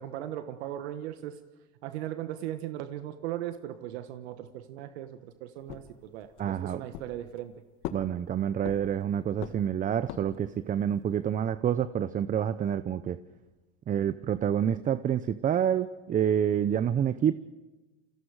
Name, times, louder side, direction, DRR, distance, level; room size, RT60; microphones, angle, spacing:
voice 1, 0.0-1.4 1.8-7.5, right 12 dB, 75° right, 9 dB, 1.4 m, -38 dB
sound 1, 5.7-6.5 6.9-7.5 7.8-9.0 9.4-10.5, left 12 dB, 60° left, 1.8 m, -41 dB
voice 2, 6.4-6.8 7.9-13.2 13.9-17.3, right 9 dB, 25° right, 14 dB, 0.6 m, -28 dB
29.0 x 24.0 x 4.9 m, 1.2 s
supercardioid pair, 110°, 33 cm